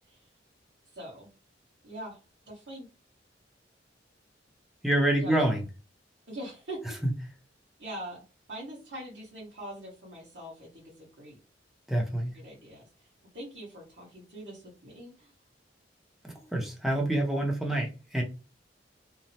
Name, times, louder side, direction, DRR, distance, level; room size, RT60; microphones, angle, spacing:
voice 1, 0.9-1.3 1.8-2.2 2.5-2.9 5.2-5.4 6.3-6.8 7.8-8.2 8.5-11.4 12.3-12.9 13.3-15.3, right 1 dB, 70° right, -8 dB, 1.4 m, -42 dB
voice 2, 4.8-5.6 7.0-7.1 11.9-12.3 16.2-18.2, right 1 dB, ahead, 0 dB, 0.6 m, -27 dB
3.0 x 2.0 x 2.7 m, 0.32 s
head